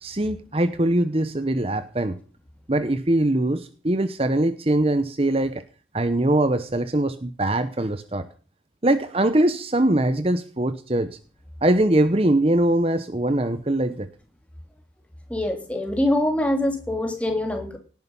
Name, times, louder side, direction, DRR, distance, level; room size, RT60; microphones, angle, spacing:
voice 1, 0.0-2.2 2.7-5.6 5.9-8.3 8.8-11.2 11.6-14.1, right 1 dB, 30° right, 12 dB, 0.9 m, -22 dB
voice 2, 15.3-17.8, left 1 dB, 5° left, 3 dB, 3.1 m, -24 dB
18.0 x 10.5 x 5.6 m, 0.39 s
head